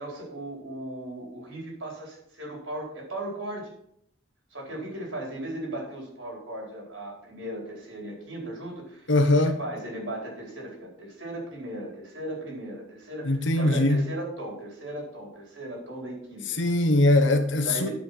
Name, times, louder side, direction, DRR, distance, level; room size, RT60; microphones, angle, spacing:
voice 1, 0.0-3.7 4.5-16.6 17.6-17.9, right 1 dB, 85° right, 4.6 m, -37 dB
voice 2, 9.1-9.6 13.2-14.0 16.5-17.9, left 2 dB, 70° left, 1.3 m, -21 dB
11.0 x 5.8 x 5.9 m
head